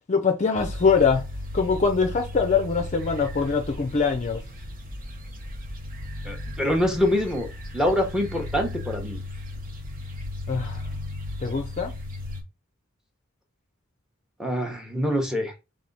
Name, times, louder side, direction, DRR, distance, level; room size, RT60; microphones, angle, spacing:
voice 1, 0.1-1.2 1.5-4.4 10.5-10.8 11.4-11.9, left 5 dB, 35° left, 0.5 m, -23 dB
sound 1, 0.6-12.4, left 1 dB, 40° right, 0.9 m, -36 dB
voice 2, 6.2-7.5 7.7-9.2 14.4-15.5, left 1 dB, 5° right, 0.8 m, -25 dB
3.4 x 3.4 x 3.8 m
head